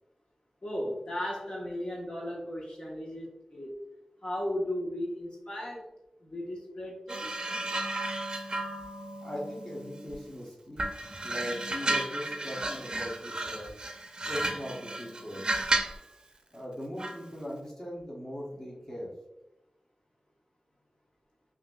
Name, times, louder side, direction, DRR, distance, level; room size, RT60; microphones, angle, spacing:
voice 1, 0.6-3.8 4.2-5.8 6.2-7.3, left 1 dB, 45° left, -3 dB, 1.1 m, -36 dB
sound 1, 7.1-10.3 10.8-16.0 17.0-17.2, right 2 dB, 40° right, 0.6 m, -33 dB
voice 2, 9.2-10.8 11.2-13.7 14.2-15.6 16.5-19.1, equal, 20° left, -4 dB, 1.0 m, -39 dB
5.5 x 2.6 x 2.3 m, 0.93 s
wide cardioid pair, 65°, 2 cm